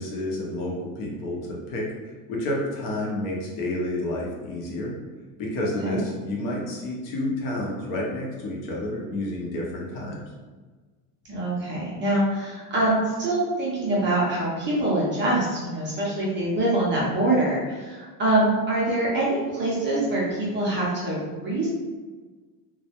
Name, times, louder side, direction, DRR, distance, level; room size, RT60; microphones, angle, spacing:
voice 1, 0.0-4.9 5.4-10.2, left 1 dB, 45° left, -3 dB, 0.6 m, -30 dB
voice 2, 11.3-21.7, right 1 dB, 25° right, -6 dB, 0.5 m, -24 dB
2.2 x 2.0 x 2.8 m, 1.4 s
supercardioid pair, 140°, 46 cm